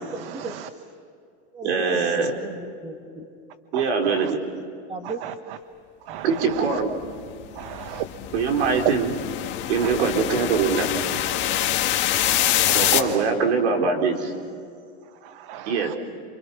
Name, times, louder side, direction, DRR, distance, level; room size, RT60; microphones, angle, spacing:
voice 1, 0.1-0.6 1.5-3.2 4.9-5.2, right 3 dB, 15° right, 4 dB, 2.2 m, -35 dB
voice 2, 1.6-2.3 3.7-4.4 6.2-6.9 8.3-9.1 9.7-10.9 12.7-14.3 15.7-15.9, right 5 dB, 85° right, 3 dB, 4.7 m, -22 dB
sound 1, 7.0-13.0, left 13 dB, 35° left, 1.9 m, -25 dB
voice 3, 7.6-8.0 8.6-8.8 9.8-9.9 12.2-12.9 15.5-16.0, right 12 dB, 55° right, 10 dB, 1.1 m, -35 dB
29.5 x 27.0 x 5.9 m, 2.4 s
supercardioid pair, 160°, 33 cm